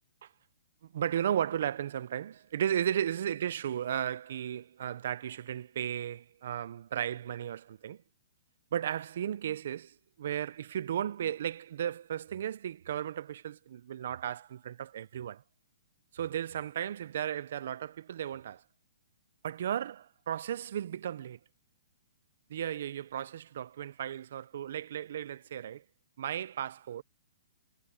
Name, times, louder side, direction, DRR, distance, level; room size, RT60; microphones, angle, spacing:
voice 1, 0.9-8.0 8.7-15.4 16.1-18.6 19.4-21.4 22.5-25.8 26.2-27.0, right 10 dB, 55° right, 0.6 m, -35 dB
hypercardioid pair, 160°, 0 cm